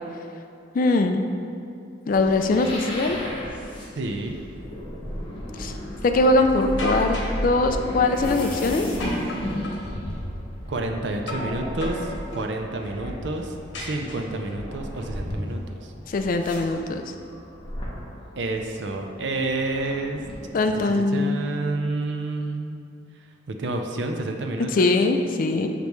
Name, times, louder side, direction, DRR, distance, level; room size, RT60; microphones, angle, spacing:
voice 1, 0.7-1.3 2.1-3.2 5.6-5.7 6.0-7.2 7.4-8.9 16.1-17.0 20.5-21.4 24.7-25.7, left 2 dB, 45° left, 6 dB, 0.4 m, -21 dB
sound 1, 2.1-20.9, equal, 25° left, 1.1 m, -34 dB
voice 2, 4.0-4.4 10.7-15.9 18.4-20.2 20.9-22.8 23.5-24.9, right 2 dB, 65° right, 4 dB, 0.5 m, -29 dB
sound 2, 6.8-7.4 9.0-9.9 11.3-11.5 11.8-12.5 13.7-14.5, left 2 dB, 75° left, 1.2 m, -34 dB
6.6 x 5.2 x 3.1 m, 2.5 s
head